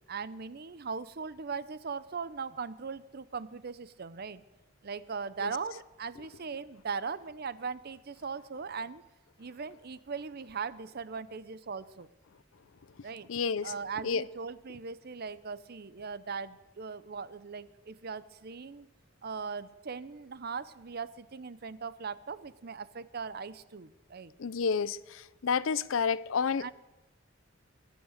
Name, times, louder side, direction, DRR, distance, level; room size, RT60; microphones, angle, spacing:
voice 1, 0.1-4.4 4.8-9.0 9.4-12.1 13.0-13.3 13.6-18.9 19.2-24.3 26.6-26.7, right 5 dB, 50° right, 0.7 m, -39 dB
voice 2, 13.3-13.7 14.0-14.2 24.4-26.7, left 5 dB, 85° left, 0.5 m, -30 dB
23.0 x 9.2 x 6.5 m
head